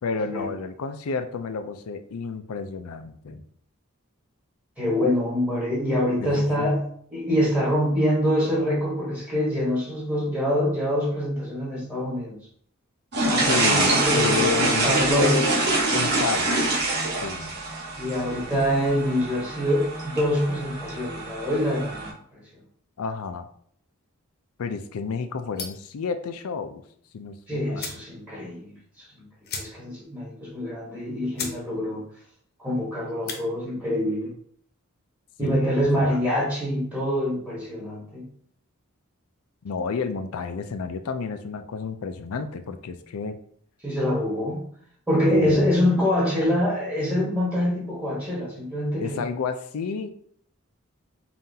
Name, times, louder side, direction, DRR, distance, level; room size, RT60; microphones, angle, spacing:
voice 1, 0.0-3.4 6.2-6.7 13.5-15.6 15.9-16.6 17.2-17.5 23.0-23.5 24.6-26.8 27.1-27.9 35.4-36.2 39.6-43.4 45.3-45.7 49.0-50.2, left 5 dB, 90° left, 9 dB, 0.4 m, -30 dB
voice 2, 4.8-6.8 7.1-12.4 13.2-15.4 18.0-22.4 27.5-29.2 29.5-32.0 32.6-34.3 35.4-38.2 43.8-44.6 45.1-49.2, equal, 5° right, -6 dB, 1.2 m, -25 dB
sound 1, 13.1-22.1, right 2 dB, 50° right, 1.2 m, -25 dB
sound 2, 25.5-25.9 27.3-27.4 27.7-28.1 28.5-28.6 28.8-28.9 29.4-30.0 30.4-30.5 31.0-31.1 31.3-31.6 32.0-32.3 33.1-33.4, left 5 dB, 45° left, 0.7 m, -35 dB
5.5 x 2.5 x 2.7 m, 0.63 s
head